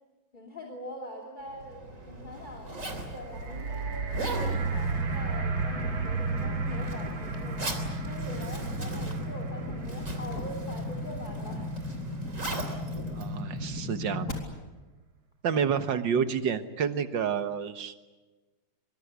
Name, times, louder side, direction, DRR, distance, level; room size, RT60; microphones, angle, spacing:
voice 1, 0.3-2.7 3.0-7.7 8.0-11.7, left 1 dB, 25° left, 2 dB, 3.1 m, -43 dB
Zipper (clothing), 1.5-14.1, right 2 dB, 40° right, 3.9 m, -40 dB
sound 1, 3.0-13.2 13.9-14.0, right 5 dB, 85° right, 3.4 m, -35 dB
sound 2, 4.3-14.3, left 1 dB, 50° left, 4.4 m, -36 dB
voice 2, 13.1-14.3 15.4-18.0, right 7 dB, 70° right, 10 dB, 2.0 m, -29 dB
24.5 x 24.0 x 8.3 m, 1.2 s
omnidirectional pair, 2.1 m